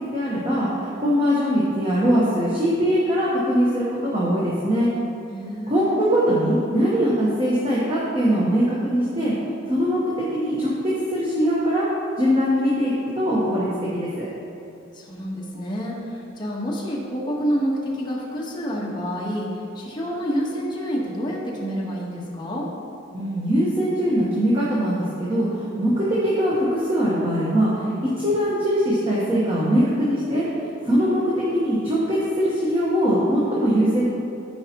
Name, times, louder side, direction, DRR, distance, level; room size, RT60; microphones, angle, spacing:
voice 1, 0.1-4.9 5.7-9.3 9.7-10.0 10.3-11.8 12.2-13.7 13.9-14.3 23.1-30.4 30.8-34.1, equal, 25° right, -8 dB, 1.0 m, -21 dB
voice 2, 5.3-6.1 14.9-22.7, equal, 20° left, -5 dB, 1.1 m, -28 dB
13.0 x 4.8 x 2.9 m, 2.7 s
head